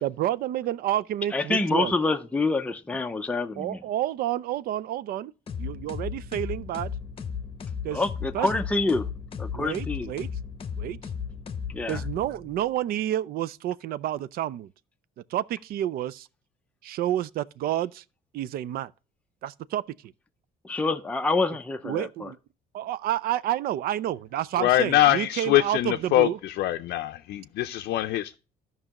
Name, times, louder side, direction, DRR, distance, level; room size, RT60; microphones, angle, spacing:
voice 1, 0.0-1.9 3.6-5.3 5.6-6.9 7.8-8.0 8.3-8.5 9.5-10.3 10.8-11.0 11.9-14.7 15.3-16.3 16.8-18.0 18.3-18.9 19.4-19.8 21.8-22.4 22.7-26.4, right 12 dB, 65° right, 0.4 m, -29 dB
voice 2, 1.3-3.8 7.9-9.1 9.4-10.1 11.7-12.0 20.6-22.3, left 3 dB, 10° left, 0.6 m, -27 dB
sound 1, 5.5-12.6, left 6 dB, 35° left, 0.9 m, -35 dB
voice 3, 24.6-28.4, left 14 dB, 70° left, 0.5 m, -23 dB
13.5 x 5.4 x 2.9 m
cardioid pair, 110°, 17 cm